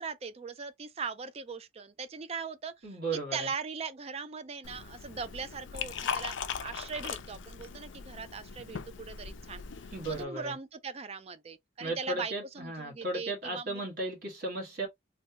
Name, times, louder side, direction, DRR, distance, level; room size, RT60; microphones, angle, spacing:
voice 1, 0.0-2.9 3.1-9.6 10.1-13.8, right 5 dB, 30° right, 0.4 m, -40 dB
voice 2, 2.8-3.5 9.9-10.5 11.8-14.9, right 2 dB, 50° right, 1.6 m, -35 dB
Liquid, 4.6-10.2, left 6 dB, 65° left, 0.4 m, -39 dB
3.3 x 2.2 x 2.7 m
head